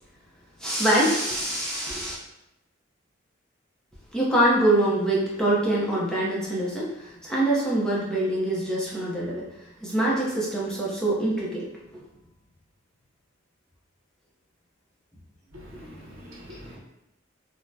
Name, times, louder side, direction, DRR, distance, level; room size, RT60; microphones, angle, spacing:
voice 1, 0.6-2.1 4.1-9.5 9.8-11.7 15.7-15.9, right 1 dB, 5° left, -6 dB, 0.6 m, -24 dB
voice 2, 15.5-16.8, equal, 80° right, -2 dB, 0.6 m, -44 dB
3.5 x 2.1 x 2.6 m, 0.88 s
head